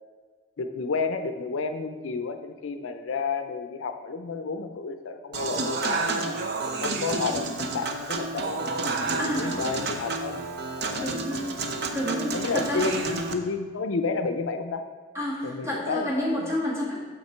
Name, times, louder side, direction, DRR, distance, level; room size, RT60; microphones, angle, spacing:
voice 1, 0.6-6.3 6.8-8.6 9.1-10.4 10.8-11.2 12.3-14.8 15.4-16.4, left 4 dB, 75° left, 8 dB, 0.5 m, -31 dB
Human voice / Acoustic guitar / Piano, 5.3-13.3, right 3 dB, 55° right, 0.6 m, -30 dB
voice 2, 9.2-9.6 11.0-11.7 11.9-12.9 15.1-17.0, equal, 15° right, -5 dB, 1.8 m, -29 dB
6.6 x 5.8 x 4.4 m, 1.5 s
head